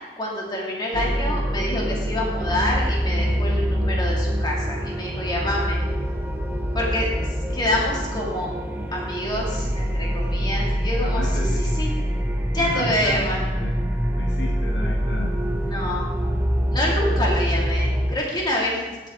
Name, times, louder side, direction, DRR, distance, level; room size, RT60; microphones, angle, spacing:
voice 1, 0.2-5.8 6.7-7.1 7.5-8.5 8.9-11.9 12.5-13.4 15.6-16.0 16.7-19.1, left 1 dB, 25° left, -3 dB, 2.6 m, -27 dB
sound 1, 0.9-18.1, equal, 10° right, 0.8 m, -25 dB
voice 2, 11.0-11.6 12.6-13.7 14.2-15.3, left 2 dB, 80° left, -1 dB, 1.5 m, -33 dB
14.5 x 7.7 x 3.8 m, 1.3 s
head